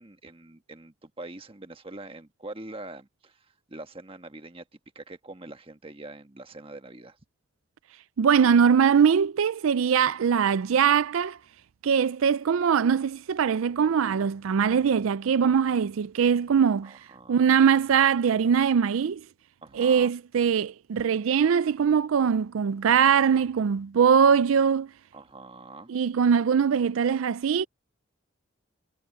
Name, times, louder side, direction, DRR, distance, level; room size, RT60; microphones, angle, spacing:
voice 1, 0.0-4.6 4.9-7.2 16.8-17.7 19.6-20.1 25.1-25.9, right 2 dB, 25° right, 1.4 m, -44 dB
voice 2, 8.2-11.4 11.8-16.9 17.3-19.2 19.7-24.9 25.9-27.7, right 7 dB, 85° right, 0.4 m, -22 dB
head